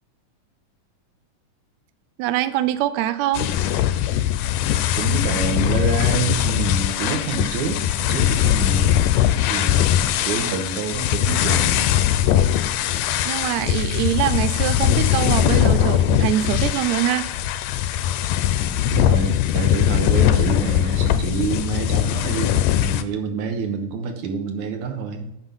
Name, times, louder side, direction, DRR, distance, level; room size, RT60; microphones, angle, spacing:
voice 1, 2.2-3.5 13.2-17.3, right 13 dB, 90° right, 11 dB, 1.6 m, -23 dB
sound 1, 3.3-23.0, left 11 dB, 90° left, 2.2 m, -20 dB
voice 2, 4.9-9.1 9.5-11.9 12.2-12.4 18.8-25.3, right 5 dB, 70° right, 5 dB, 2.3 m, -27 dB
8.0 x 5.8 x 5.4 m, 0.86 s
omnidirectional pair, 3.7 m